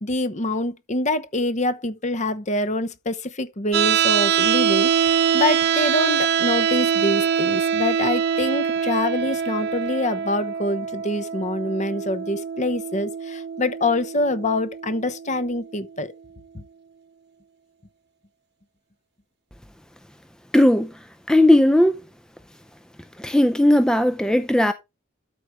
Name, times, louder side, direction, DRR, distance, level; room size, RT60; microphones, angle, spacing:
voice 1, 0.0-16.1, left 2 dB, 35° left, 0.9 m, -25 dB
sound 1, 3.7-15.7, right 7 dB, 55° right, 1.0 m, -24 dB
voice 2, 20.5-20.9 21.3-22.0 23.2-24.7, left 1 dB, 5° left, 0.5 m, -17 dB
12.5 x 4.9 x 3.1 m
head